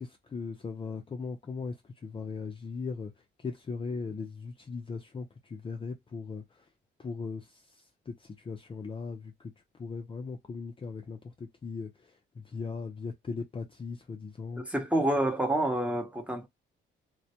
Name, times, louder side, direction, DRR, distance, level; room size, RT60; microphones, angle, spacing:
voice 1, 0.0-3.1 3.4-6.7 7.0-9.5 9.8-14.7, left 4 dB, 25° left, 0.4 m, -39 dB
voice 2, 14.6-16.5, right 1 dB, 5° right, 0.7 m, -28 dB
2.1 x 2.1 x 2.8 m
cardioid pair, 90°, 20 cm